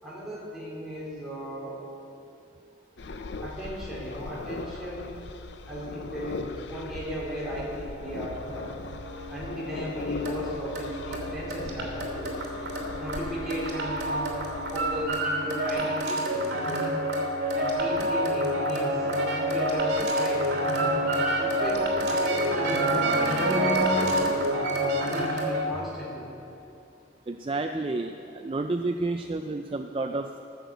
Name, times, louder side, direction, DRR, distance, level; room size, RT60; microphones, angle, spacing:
voice 1, 0.0-1.8 3.4-5.2 5.7-8.7 9.3-12.4 13.0-17.0 17.5-20.4 21.3-26.3, equal, ahead, -8 dB, 3.6 m, -36 dB
sound 1, 3.0-15.1, left 3 dB, 75° left, 0.6 m, -39 dB
sound 2, 8.4-25.7, right 1 dB, 65° right, 2.8 m, -28 dB
voice 2, 27.3-30.4, right 2 dB, 30° right, 6 dB, 0.3 m, -30 dB
15.0 x 6.6 x 8.1 m, 2.8 s
head